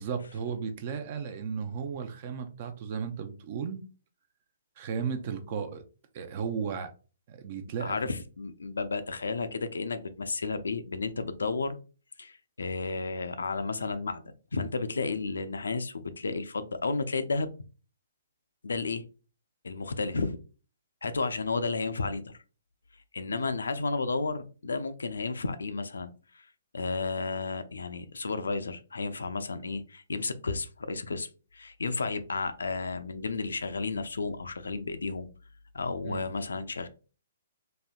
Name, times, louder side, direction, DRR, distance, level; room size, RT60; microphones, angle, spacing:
voice 1, 0.0-3.8 4.8-5.8 6.1-6.9 7.3-8.0 23.3-23.5 36.0-36.3, right 6 dB, 40° right, 0.5 m, -35 dB
voice 2, 7.8-11.8 12.2-17.5 18.6-19.0 19.6-20.3 21.0-22.4 23.1-26.5 26.7-31.3 31.5-35.3 35.7-36.9, left 4 dB, 70° left, 0.4 m, -32 dB
4.1 x 2.7 x 2.3 m
figure-of-eight pair, 125°, 0 cm